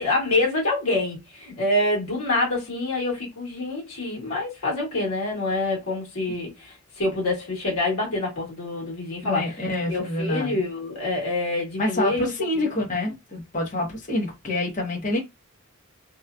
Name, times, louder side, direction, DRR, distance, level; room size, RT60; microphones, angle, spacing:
voice 1, 0.0-9.6 9.9-12.7, left 2 dB, 80° left, 1.5 m, -26 dB
voice 2, 9.2-10.6 11.8-15.2, left 1 dB, 35° left, 1.0 m, -27 dB
2.9 x 2.3 x 2.4 m
head